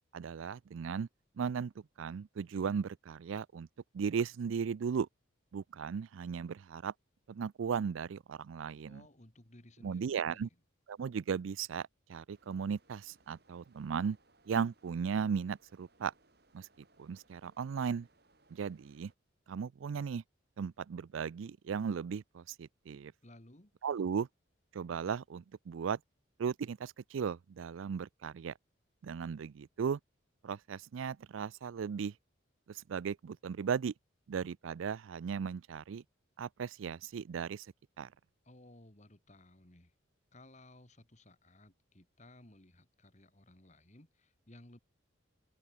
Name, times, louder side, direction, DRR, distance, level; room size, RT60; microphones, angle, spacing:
voice 1, 0.1-1.1 1.4-1.7 2.0-3.7 3.9-5.1 5.5-6.9 7.3-9.0 9.8-10.5 10.9-14.2 14.5-16.1 16.5-16.7 17.0-18.1 18.5-19.1 19.5-20.2 20.6-23.1 23.8-24.3 24.7-26.0 26.4-28.5 29.0-30.0 30.4-32.1 32.7-33.9 34.3-36.0 36.4-37.7 38.0-38.1, right 6 dB, 75° right, 0.4 m, -36 dB
voice 2, 8.9-10.6 23.2-23.7 38.4-39.9 40.3-44.8, left 1 dB, 35° left, 2.5 m, -58 dB
sound 1, 12.3-19.1, right 2 dB, 50° right, 4.2 m, -69 dB
open air
head